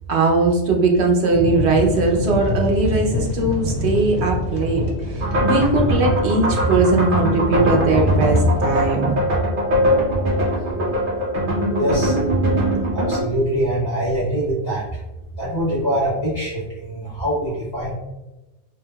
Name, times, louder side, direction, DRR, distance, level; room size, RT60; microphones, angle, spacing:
voice 1, 0.1-9.1, right 3 dB, 80° right, 0 dB, 1.0 m, -19 dB
sound 1, 1.3-8.9, left 1 dB, 85° left, 1.1 m, -26 dB
sound 2, 5.2-13.2, equal, 55° right, 0.9 m, -21 dB
voice 2, 11.7-12.1 12.9-14.8 15.4-18.0, right 1 dB, 60° left, -8 dB, 1.5 m, -23 dB
3.6 x 2.8 x 2.2 m, 1.0 s
omnidirectional pair, 1.1 m